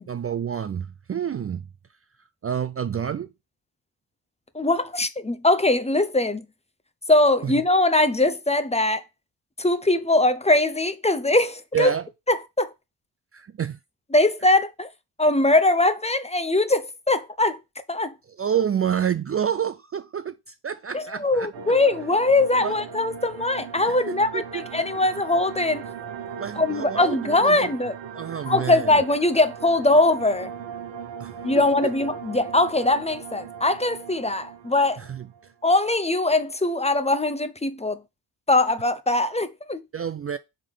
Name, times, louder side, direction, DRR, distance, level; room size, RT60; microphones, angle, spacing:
voice 1, 0.1-1.7 2.4-3.3 7.4-7.5 11.7-12.1 13.3-13.8 18.3-21.5 22.6-22.7 23.9-24.6 26.4-27.7 28.1-29.0 31.2-31.3 31.8-31.9 35.0-35.5 39.9-40.4, right 8 dB, 35° right, 0.4 m, -28 dB
voice 2, 4.5-6.5 7.1-9.0 9.6-11.9 12.3-12.7 14.1-14.9 15.2-17.6 17.9-18.1 20.9-25.8 26.6-27.9 28.5-30.5 31.4-35.0 35.6-38.0 38.5-39.8, left 2 dB, 15° left, 0.7 m, -21 dB
sound 1, 21.5-35.5, right 7 dB, 90° right, 1.0 m, -38 dB
5.2 x 3.4 x 5.5 m
cardioid pair, 55°, 43 cm